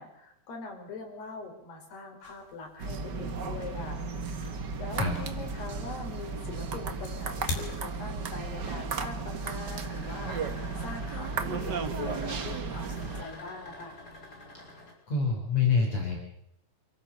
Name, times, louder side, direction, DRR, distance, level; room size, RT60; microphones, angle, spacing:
voice 1, 0.0-14.0, left 3 dB, 75° left, 3 dB, 6.8 m, -42 dB
sound 1, 2.2-8.6, left 3 dB, 90° left, 6.7 m, -44 dB
sound 2, 2.8-13.2, right 4 dB, 85° right, 0.9 m, -34 dB
sound 3, 8.1-14.9, left 2 dB, 20° left, 6.3 m, -50 dB
voice 2, 15.1-16.2, left 5 dB, 45° left, 1 dB, 5.3 m, -26 dB
28.0 x 14.5 x 7.1 m, 0.78 s
omnidirectional pair, 4.7 m